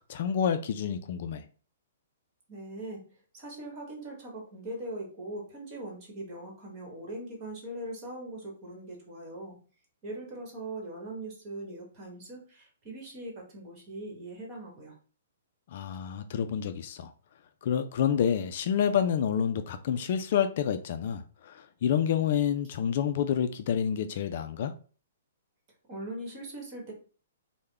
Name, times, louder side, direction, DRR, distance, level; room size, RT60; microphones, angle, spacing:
voice 1, 0.1-1.4 15.7-17.1 17.6-24.7, left 8 dB, 50° left, 0.3 m, -28 dB
voice 2, 2.5-3.1 3.3-9.5 10.0-14.9 25.9-26.9, right 1 dB, 30° right, 1.2 m, -41 dB
3.5 x 2.1 x 3.3 m
hypercardioid pair, 155°, 0 cm